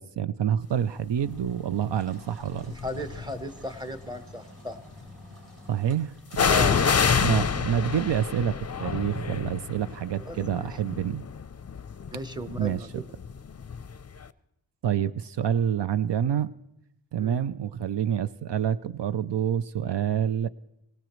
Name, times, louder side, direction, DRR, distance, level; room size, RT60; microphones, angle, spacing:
voice 1, 0.0-2.7 5.7-6.5 7.2-11.2 12.6-13.0 14.8-16.5 17.1-20.5, right 9 dB, 75° right, 13 dB, 0.5 m, -27 dB
Engine, 1.1-8.7, left 1 dB, 30° right, 7.6 m, -50 dB
sound 1, 1.4-1.7 2.5-3.4 6.3-14.0 14.2-14.3, left 6 dB, 35° left, 0.5 m, -28 dB
voice 2, 2.7-4.8 6.5-7.2 10.2-10.7 12.1-13.1 17.2-17.4, equal, 10° right, 9 dB, 1.0 m, -37 dB
24.0 x 17.5 x 3.1 m, 0.85 s
wide cardioid pair, 90°, 43 cm